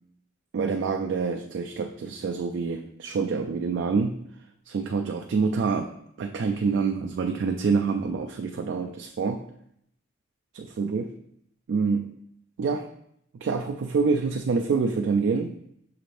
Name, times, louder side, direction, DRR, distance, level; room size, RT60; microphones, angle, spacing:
voice 1, 0.5-4.2 4.7-5.9 6.2-9.4 10.5-11.1 11.7-12.1 12.6-12.9 13.4-15.6, right 5 dB, 70° right, 4 dB, 0.3 m, -26 dB
6.4 x 3.2 x 2.5 m, 0.73 s
head